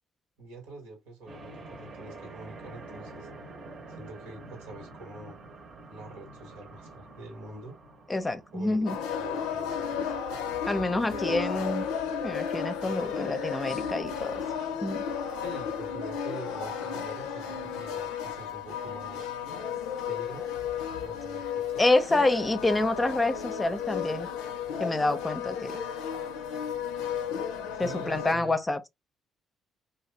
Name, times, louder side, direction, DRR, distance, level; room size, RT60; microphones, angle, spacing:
voice 1, 0.4-3.3 3.9-5.4 5.9-7.8 8.5-10.2 11.0-11.5 15.4-19.3 20.1-20.5 21.0-21.8 27.7-28.6, right 2 dB, 85° right, 1.2 m, -45 dB
sound 1, 1.3-9.3, right 2 dB, 50° right, 0.9 m, -47 dB
voice 2, 8.1-9.0 10.7-11.8 12.1-14.4 14.8-15.0 21.8-24.3 24.8-25.7 27.8-28.9, left 2 dB, 20° left, 0.6 m, -27 dB
sound 2, 8.9-28.3, left 7 dB, 75° left, 0.5 m, -33 dB
2.6 x 2.3 x 3.2 m
hypercardioid pair, 50°, 0 cm